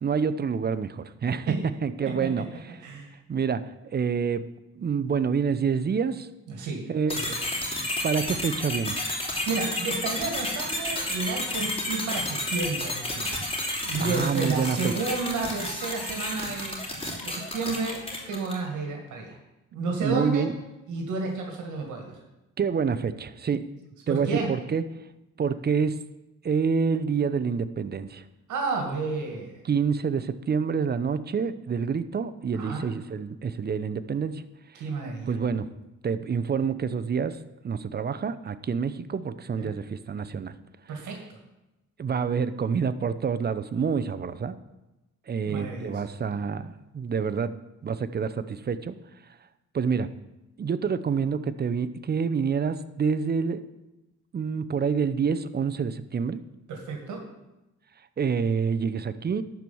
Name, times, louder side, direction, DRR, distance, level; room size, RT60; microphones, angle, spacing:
voice 1, 0.0-2.5 3.3-4.4 4.8-6.3 6.9-7.3 8.0-9.1 14.0-14.9 20.0-20.5 22.6-23.6 24.1-24.8 25.4-26.0 26.4-28.2 29.6-34.4 34.7-34.8 35.3-35.7 36.0-37.4 37.6-40.5 42.0-44.5 45.3-47.5 47.8-48.9 49.7-50.1 50.6-53.6 54.3-56.4 58.2-59.4, right 6 dB, 35° right, 12 dB, 0.7 m, -27 dB
voice 2, 2.8-3.1 6.5-6.9 7.1-7.3 9.2-13.4 13.8-18.0 18.3-19.4 19.7-20.5 20.9-22.2 24.1-24.5 28.5-29.6 32.5-32.8 34.8-35.3 39.5-39.7 40.9-41.4 45.5-45.9 56.7-57.2, right 3 dB, 80° right, 2 dB, 2.0 m, -31 dB
sound 1, 7.1-18.7, left 1 dB, 20° left, 2.9 m, -31 dB
11.5 x 4.7 x 7.0 m, 0.98 s
cardioid pair, 90°, 30 cm